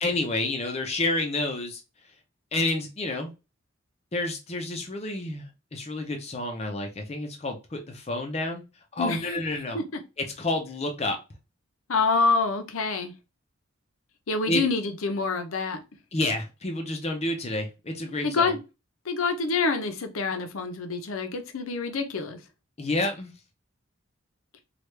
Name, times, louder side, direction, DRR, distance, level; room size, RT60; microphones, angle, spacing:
voice 1, 0.0-1.8 2.5-3.3 4.1-8.6 8.9-9.8 10.2-11.2 14.5-14.6 16.1-18.6 22.8-23.3, left 2 dB, 30° left, 0.5 m, -29 dB
voice 2, 9.0-9.4 9.7-10.0 11.9-13.1 14.3-15.8 18.2-18.6 19.1-22.4, left 4 dB, 90° left, 0.7 m, -27 dB
3.1 x 2.3 x 3.2 m
head